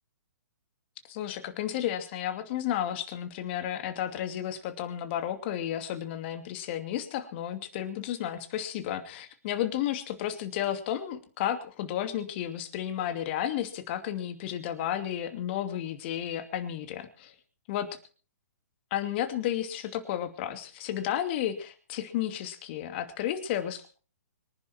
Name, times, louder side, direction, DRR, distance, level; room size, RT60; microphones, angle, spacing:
voice 1, 1.1-17.3 17.7-17.9 18.9-23.9, left 11 dB, 40° left, 8 dB, 2.6 m, -32 dB
25.0 x 11.0 x 4.5 m, 0.38 s
hypercardioid pair, 130°, 9 cm